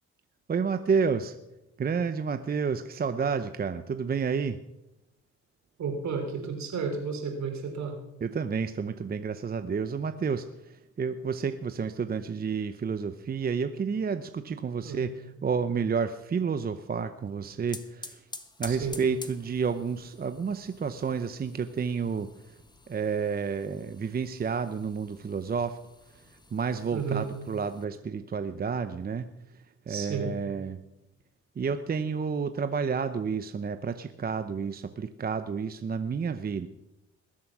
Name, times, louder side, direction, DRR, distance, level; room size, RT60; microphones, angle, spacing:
voice 1, 0.5-1.4 1.8-4.6 8.2-18.2 18.6-22.3 22.9-25.8 26.5-29.3 29.9-30.8 31.6-36.7, right 6 dB, 30° right, 10 dB, 0.7 m, -30 dB
voice 2, 5.8-8.0 14.8-15.1 18.7-19.0 26.9-27.3 29.9-30.3, right 5 dB, 65° right, 4 dB, 3.6 m, -32 dB
sound 1, 17.2-27.8, left 2 dB, 15° left, 1.1 m, -49 dB
20.5 x 7.6 x 6.1 m, 0.93 s
cardioid pair, 90°, 30 cm